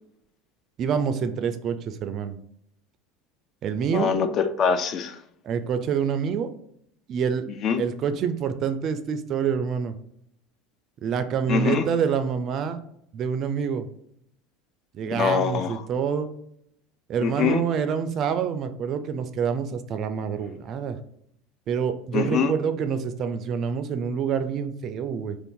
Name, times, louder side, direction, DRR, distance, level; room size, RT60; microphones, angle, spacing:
voice 1, 0.8-2.4 3.6-4.1 5.4-6.5 7.1-7.4 7.8-9.9 11.0-12.8 13.1-13.9 14.9-16.3 17.1-21.0 21.7-25.4, right 7 dB, 45° right, 10 dB, 0.3 m, -27 dB
voice 2, 3.9-5.2 7.6-7.8 11.5-11.9 15.1-15.8 17.2-17.6 22.1-22.5, left 6 dB, 40° left, 10 dB, 0.3 m, -24 dB
2.6 x 2.4 x 3.6 m, 0.70 s
supercardioid pair, 120°, 0 cm